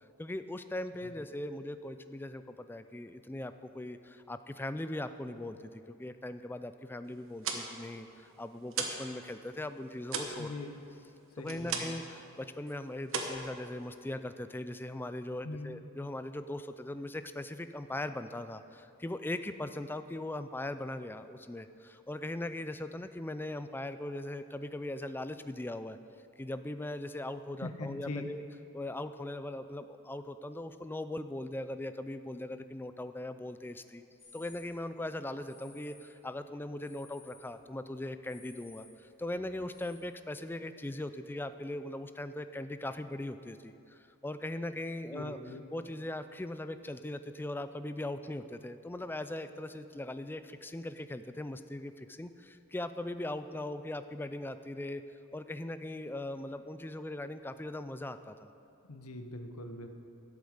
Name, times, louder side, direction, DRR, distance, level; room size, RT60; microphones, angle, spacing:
voice 1, 0.2-10.5 11.4-26.0 26.4-28.4 28.7-34.0 34.3-45.4 45.7-55.0 55.3-58.5, left 1 dB, 10° left, 11 dB, 0.3 m, -40 dB
sound 1, 7.2-9.1 9.4-12.1 12.4-12.7 13.1-14.2, right 5 dB, 65° right, 1.1 m, -37 dB
voice 2, 10.4-10.7 11.4-12.0 15.4-15.8 27.6-28.3 45.1-45.6 58.9-59.9, left 2 dB, 85° left, 6 dB, 1.0 m, -42 dB
sound 2, 34.2-34.7 35.4-36.1 36.6-37.6 37.8-40.0, left 4 dB, 40° left, 3.5 m, -58 dB
12.0 x 8.4 x 6.5 m, 2.7 s
head